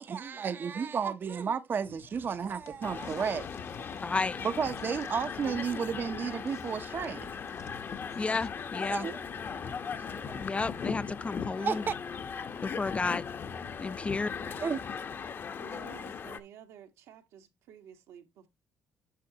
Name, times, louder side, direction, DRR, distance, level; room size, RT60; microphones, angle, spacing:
voice 1, 0.0-3.5 4.4-7.3 8.0-8.1 8.8-9.2 10.2-10.4 11.6-11.9 14.4-14.8, right 6 dB, 40° right, 0.7 m, -33 dB
sound 1, 1.8-8.5, left 9 dB, 65° left, 0.7 m, -52 dB
sound 2, 2.8-16.4, left 6 dB, 45° left, 1.0 m, -38 dB
voice 2, 4.0-4.4 8.2-9.1 10.4-11.8 12.6-13.2 13.8-14.3, left 4 dB, 25° left, 0.5 m, -32 dB
voice 3, 15.6-18.5, right 9 dB, 85° right, 1.7 m, -52 dB
9.3 x 6.4 x 2.8 m
cardioid pair, 85°, 5 cm